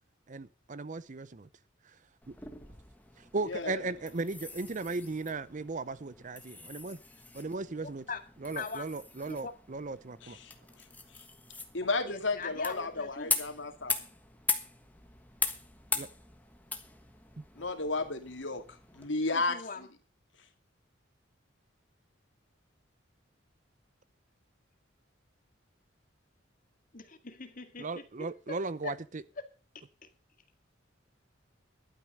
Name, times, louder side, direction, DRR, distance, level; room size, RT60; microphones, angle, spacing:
voice 1, 0.3-1.5 2.3-2.4 3.3-7.0 7.3-8.0 8.4-10.4 15.9-16.1 17.4-17.5 27.8-29.2, right 3 dB, 40° right, 0.6 m, -36 dB
sound 1, 2.2-19.1, left 3 dB, 10° left, 1.3 m, -40 dB
voice 2, 3.5-3.9 10.2-10.5 11.7-13.9 17.6-18.6 18.9-19.9, left 3 dB, 70° left, 2.4 m, -33 dB
voice 3, 7.8-8.2 8.6-8.8 9.2-9.5 11.9-13.3 19.3-19.9 26.9-28.6 28.8-28.9 29.4-29.5 30.0-30.1, left 4 dB, 45° left, 2.0 m, -42 dB
12.0 x 9.3 x 6.5 m
head